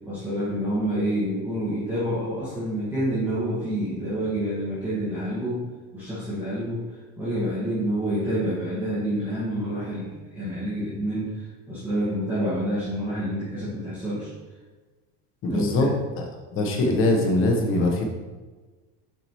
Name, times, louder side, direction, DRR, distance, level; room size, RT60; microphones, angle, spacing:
voice 1, 0.0-5.7 5.9-6.8 7.2-14.3 15.5-15.9, equal, 5° right, -11 dB, 1.6 m, -28 dB
voice 2, 15.4-15.9 16.5-18.0, left 2 dB, 40° left, 2 dB, 1.1 m, -22 dB
7.2 x 4.9 x 3.0 m, 1.3 s
cardioid pair, 155°, 31 cm